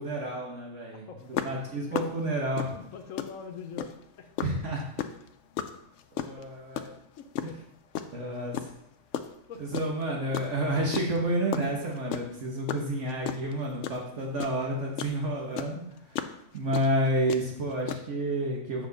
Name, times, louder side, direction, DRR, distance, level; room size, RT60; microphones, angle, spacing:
voice 1, 0.0-2.7 4.4-4.8 6.1-6.9 7.4-7.5 8.1-8.7 9.6-16.2 16.5-18.9, right 1 dB, 65° right, -1 dB, 1.5 m, -30 dB
voice 2, 1.1-1.7 2.7-3.9 4.2-4.5 7.2-7.6 9.3-9.6, left 6 dB, 85° left, 4 dB, 1.2 m, -43 dB
sound 1, 1.3-4.1 4.4-8.2 8.5-10.1 10.3-15.2 15.5-18.0, left 9 dB, 70° left, 0.8 m, -34 dB
8.0 x 6.2 x 4.0 m, 0.78 s
omnidirectional pair, 1.4 m